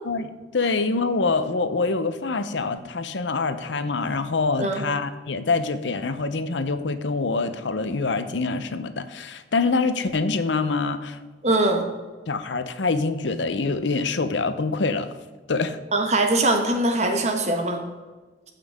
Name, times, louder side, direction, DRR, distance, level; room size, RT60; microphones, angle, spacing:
voice 1, 0.1-11.2 12.3-15.1 15.5-15.8, left 3 dB, 85° left, 11 dB, 0.7 m, -25 dB
voice 2, 11.4-11.8 15.9-17.8, right 2 dB, 35° right, 4 dB, 1.2 m, -22 dB
14.5 x 5.8 x 3.5 m, 1.3 s
head